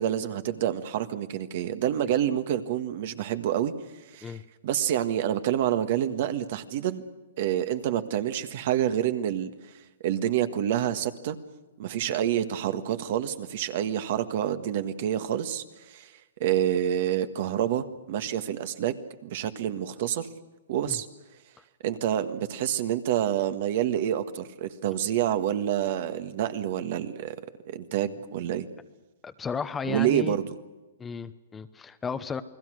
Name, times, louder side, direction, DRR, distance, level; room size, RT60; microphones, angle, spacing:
voice 1, 0.0-3.7 4.1-4.4 4.6-7.0 7.4-9.5 10.0-11.4 11.8-16.1 16.4-18.9 19.2-20.3 20.7-21.1 21.8-27.3 27.6-28.6 29.8-30.6, right 10 dB, 50° right, 10 dB, 1.6 m, -27 dB
voice 2, 29.2-30.4 31.0-32.4, left 5 dB, 15° left, 11 dB, 0.9 m, -34 dB
29.0 x 20.0 x 6.4 m, 1.1 s
hypercardioid pair, 140°, 0 cm